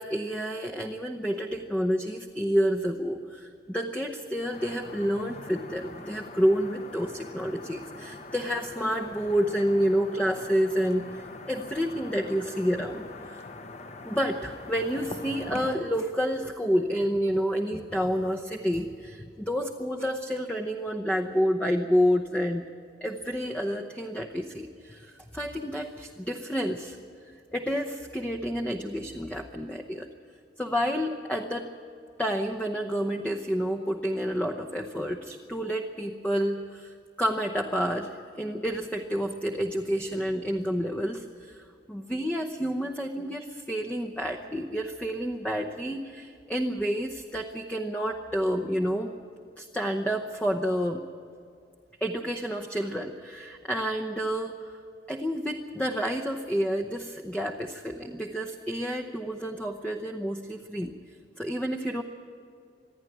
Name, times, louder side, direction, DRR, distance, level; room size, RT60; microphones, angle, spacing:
voice 1, 0.0-13.4 14.0-22.7 23.0-27.0 27.5-30.1 30.6-31.7 32.2-49.1 49.6-51.0 52.0-54.8 55.1-60.9 61.4-62.0, equal, 10° left, 2 dB, 0.8 m, -29 dB
sound 1, 4.5-15.8, left 2 dB, 35° left, 1.0 m, -43 dB
26.5 x 10.5 x 9.4 m, 2.4 s
head